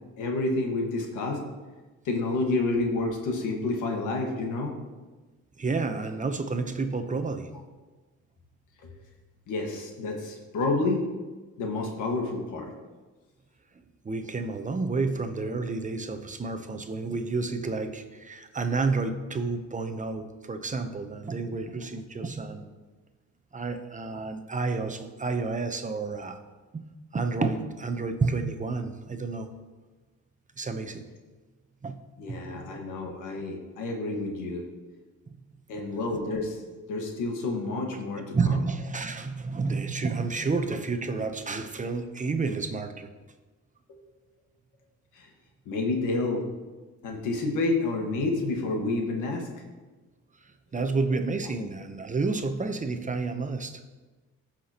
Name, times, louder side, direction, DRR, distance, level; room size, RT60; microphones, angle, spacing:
voice 1, 0.2-1.4 2.0-4.7 8.8-8.9 9.5-11.0 11.6-12.7 32.2-34.6 35.7-36.6 36.9-38.6 43.9-44.0 45.1-45.3 45.6-46.4 47.0-49.6 50.7-50.9, left 2 dB, 85° left, 1 dB, 1.7 m, -29 dB
voice 2, 5.6-7.5 14.0-22.7 23.5-26.4 26.7-26.8 27.1-29.5 30.6-31.1 31.8-32.0 32.4-32.7 38.3-43.1 50.4-53.8, right 4 dB, 25° right, 7 dB, 0.8 m, -30 dB
14.5 x 5.9 x 2.9 m, 1.2 s
cardioid pair, 90°, 30 cm